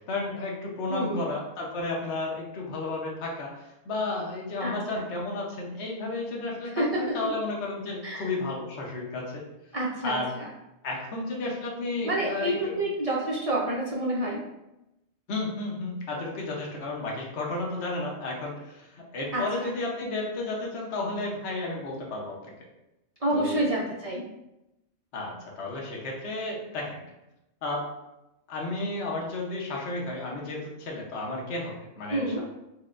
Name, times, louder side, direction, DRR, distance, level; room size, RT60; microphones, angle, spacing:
voice 1, 0.1-9.4 10.0-10.3 10.8-12.8 15.3-22.4 23.3-23.6 25.1-27.0 27.6-27.8 28.5-32.4, left 2 dB, 55° left, -2 dB, 1.1 m, -32 dB
voice 2, 0.9-1.2 4.6-5.0 6.7-7.3 8.0-8.3 9.7-10.5 12.0-14.4 19.3-19.7 23.2-24.3 32.1-32.4, right 1 dB, 45° right, -4 dB, 0.4 m, -28 dB
6.0 x 2.2 x 2.5 m, 0.92 s
omnidirectional pair, 1.4 m